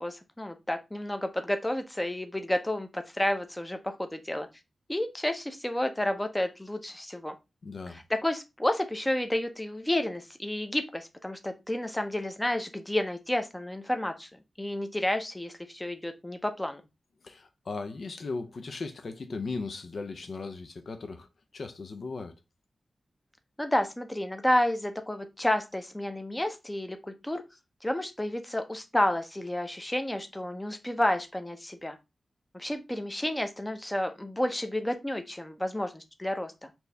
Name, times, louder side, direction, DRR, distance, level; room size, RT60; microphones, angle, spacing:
voice 1, 0.0-4.5 4.9-7.3 8.2-14.3 14.6-16.8 23.6-27.4 27.8-32.0 32.5-36.7, left 1 dB, 10° left, 0.6 m, -30 dB
voice 2, 7.6-8.0 17.2-21.3 21.5-22.3, left 3 dB, 65° left, 0.5 m, -37 dB
4.3 x 2.7 x 3.2 m
wide cardioid pair, 95°, 0 cm